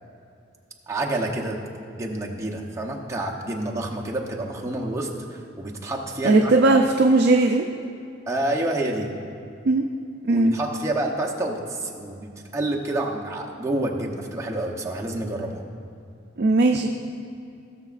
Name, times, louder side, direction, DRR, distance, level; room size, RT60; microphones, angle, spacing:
voice 1, 0.9-1.6 1.9-6.8 8.3-9.1 10.3-15.6, right 1 dB, 15° right, -1 dB, 0.8 m, -28 dB
voice 2, 6.2-7.6 9.6-9.8 10.2-10.5 16.4-16.9, right 2 dB, 55° right, 2 dB, 0.4 m, -18 dB
17.0 x 6.9 x 2.5 m, 2.5 s
head